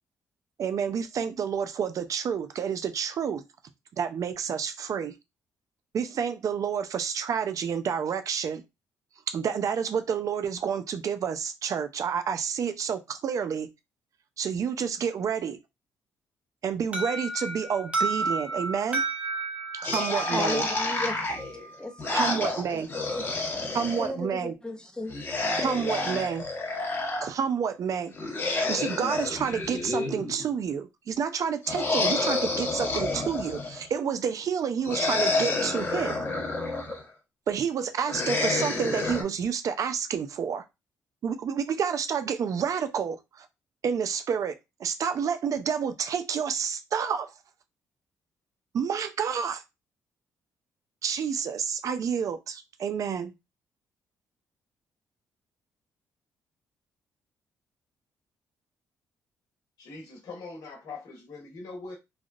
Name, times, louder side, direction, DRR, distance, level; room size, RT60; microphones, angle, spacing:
voice 1, 0.6-3.4 4.0-5.1 5.9-8.6 9.3-13.7 14.4-15.6 16.6-19.0 19.8-20.6 22.1-22.9 23.7-24.5 25.6-26.4 27.2-28.1 28.5-36.2 37.5-40.6 41.2-43.5 43.8-47.3 48.7-49.6 51.0-53.3, right 7 dB, 60° right, 0.5 m, -29 dB
Alarm, 16.9-21.7, right 3 dB, 20° right, 0.9 m, -32 dB
sound 1, 19.8-24.1 25.1-27.3 28.1-30.5 31.6-33.9 34.8-37.0 38.1-39.2, left 2 dB, 35° left, 1.1 m, -29 dB
voice 2, 20.3-21.2 21.8-22.8 23.1-23.4 24.0-25.2 25.6-25.7 26.1-26.2, left 2 dB, 15° left, 0.6 m, -35 dB
voice 3, 59.8-61.9, left 3 dB, 70° left, 1.3 m, -42 dB
3.4 x 2.2 x 2.4 m
cardioid pair, 75°, 7 cm